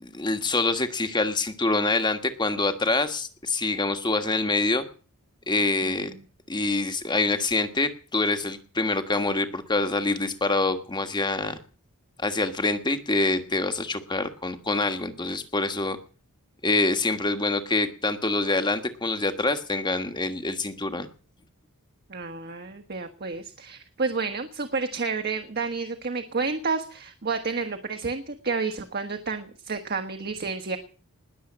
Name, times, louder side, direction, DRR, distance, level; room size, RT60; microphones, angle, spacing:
voice 1, 0.0-4.8 5.5-6.1 6.5-11.6 12.2-16.0 16.6-21.1, left 3 dB, 20° left, 8 dB, 1.5 m, -26 dB
voice 2, 5.8-6.2 22.1-30.8, right 4 dB, 45° right, 5 dB, 1.5 m, -30 dB
20.0 x 7.5 x 8.6 m, 0.41 s
head